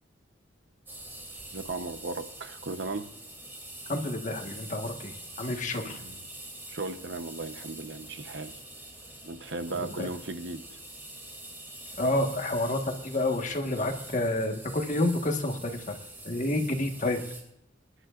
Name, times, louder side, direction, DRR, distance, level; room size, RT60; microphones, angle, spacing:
sound 1, 0.9-17.4, right 1 dB, 15° right, 3.4 m, -45 dB
voice 1, 1.5-3.1 5.7-6.2 6.7-8.6 9.2-10.6, right 3 dB, 65° right, 10 dB, 0.9 m, -36 dB
voice 2, 3.9-6.0 9.8-10.1 12.0-16.0 16.2-17.2, left 1 dB, 40° left, 4 dB, 1.5 m, -29 dB
25.0 x 11.5 x 2.5 m, 0.76 s
head